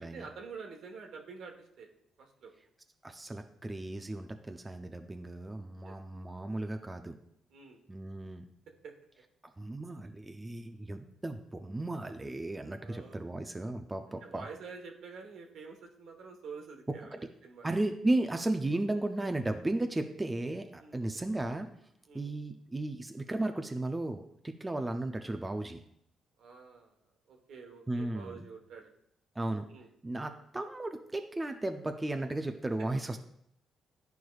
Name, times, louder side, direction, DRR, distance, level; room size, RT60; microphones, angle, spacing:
voice 1, 0.0-1.9 2.2-2.5 4.1-4.2 5.8-5.9 7.5-7.8 8.8-8.9 12.8-13.3 14.2-17.7 20.8-21.0 22.1-22.3 26.4-26.9 27.3-28.9 29.7-29.9, right 5 dB, 70° right, 3 dB, 1.1 m, -48 dB
voice 2, 3.0-7.2 7.9-8.4 9.6-14.5 17.1-17.2 17.6-21.7 22.1-25.8 27.9-28.4 29.4-29.7 30.0-33.2, right 2 dB, 15° right, 5 dB, 0.5 m, -35 dB
11.5 x 4.6 x 2.3 m, 0.74 s
cardioid pair, 90°, 0 cm